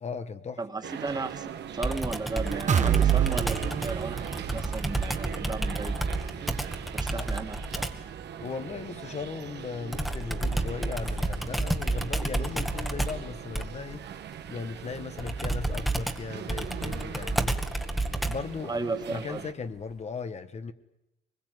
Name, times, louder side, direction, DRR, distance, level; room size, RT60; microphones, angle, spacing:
voice 1, 0.0-0.9 7.2-7.3 8.4-14.1 14.5-17.6 18.2-20.7, left 5 dB, 40° left, 1.3 m, -37 dB
voice 2, 0.6-6.5 6.9-7.8 18.7-19.4, right 3 dB, 20° right, 2.2 m, -35 dB
sound 1, 0.8-19.5, right 9 dB, 70° right, 1.5 m, -41 dB
Computer keyboard, 1.8-8.1 9.9-18.6, right 1 dB, ahead, 1.7 m, -31 dB
sound 2, 2.7-10.5 10.9-11.0 11.4-11.5, right 8 dB, 40° right, 1.4 m, -30 dB
23.5 x 21.5 x 9.4 m
cardioid pair, 130°, 18 cm